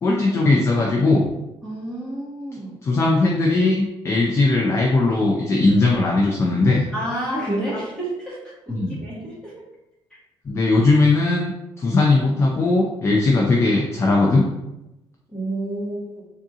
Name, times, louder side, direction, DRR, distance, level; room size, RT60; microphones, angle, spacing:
voice 1, 0.0-1.3 2.8-6.8 8.7-9.0 10.5-11.5 11.8-14.5, left 2 dB, 30° left, -1 dB, 0.4 m, -19 dB
voice 2, 1.6-2.7 6.9-8.4 8.7-9.5 15.3-16.2, right 1 dB, 10° left, -8 dB, 1.4 m, -29 dB
3.5 x 2.7 x 3.7 m, 0.94 s
cardioid pair, 180°, 10 cm